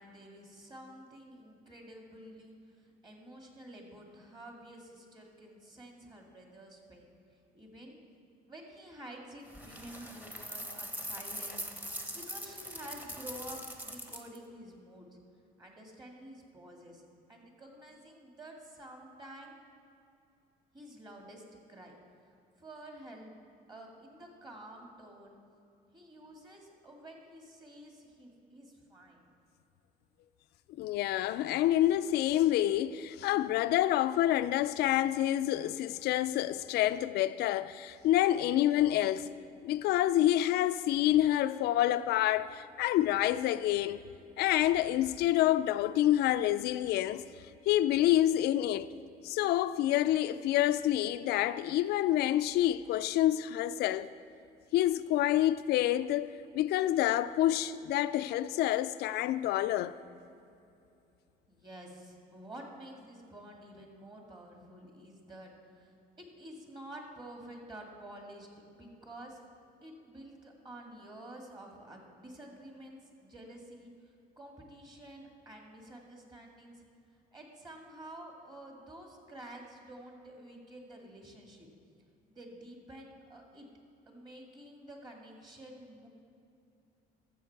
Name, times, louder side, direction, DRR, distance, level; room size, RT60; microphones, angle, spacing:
voice 1, 0.0-7.1 7.5-8.0 8.5-15.2 15.6-17.0 17.3-19.5 20.7-21.4 21.7-22.0 22.6-23.4 23.7-25.4 25.9-29.2 61.5-69.4 69.8-76.8 77.3-81.7 82.3-83.7 84.1-86.1, right 1 dB, 25° right, 2.0 m, -50 dB
sound 1, 9.5-14.4, equal, 10° right, 1.0 m, -42 dB
voice 2, 30.8-39.3 39.6-44.0 44.4-47.2 47.7-48.9 49.2-54.1 54.7-60.0, left 13 dB, 75° left, 0.4 m, -28 dB
13.0 x 7.2 x 4.6 m
cardioid pair, 110°, 17 cm